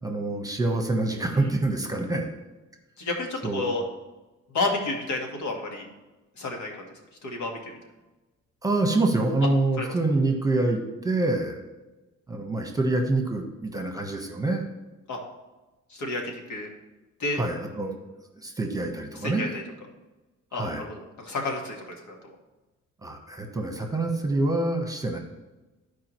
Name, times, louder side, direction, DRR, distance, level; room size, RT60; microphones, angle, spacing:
voice 1, 0.0-2.3 3.4-3.7 8.6-11.6 12.3-14.7 17.4-18.0 18.4-19.5 20.6-20.8 23.0-25.2, right 2 dB, 10° right, 3 dB, 1.2 m, -26 dB
voice 2, 3.0-3.8 4.5-5.9 6.4-6.8 7.2-7.7 9.8-9.9 15.1-15.2 15.9-16.7 17.2-17.4 19.2-19.6 20.5-22.3, left 2 dB, 70° left, 2 dB, 1.7 m, -31 dB
14.0 x 4.8 x 3.1 m, 1.1 s
cardioid pair, 90°, 30 cm